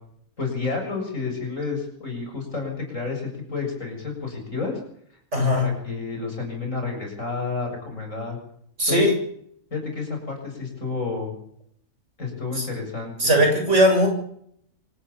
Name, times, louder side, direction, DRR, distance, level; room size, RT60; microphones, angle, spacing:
voice 1, 0.4-4.8 5.3-8.4 8.9-9.1 9.7-11.3 12.2-13.3, left 4 dB, 55° left, 3 dB, 7.9 m, -30 dB
voice 2, 5.3-5.7 8.8-9.1 13.2-14.1, equal, 50° right, 3 dB, 7.5 m, -18 dB
26.0 x 14.0 x 8.7 m, 0.67 s
omnidirectional pair, 1.6 m